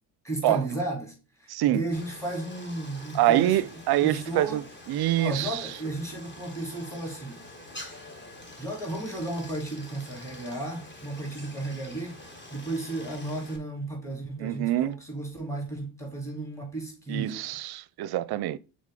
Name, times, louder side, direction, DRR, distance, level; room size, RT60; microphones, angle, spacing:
voice 1, 0.2-3.6 4.0-4.6 5.2-7.5 8.6-12.2 12.5-17.5, right 2 dB, 5° left, 2.4 m, -34 dB
voice 2, 1.5-1.8 3.1-5.7 14.4-14.9 17.1-18.6, right 14 dB, 55° right, 0.5 m, -25 dB
Stream, 1.9-13.6, left 1 dB, 25° left, 1.5 m, -46 dB
6.4 x 4.1 x 3.7 m
supercardioid pair, 80°, 48 cm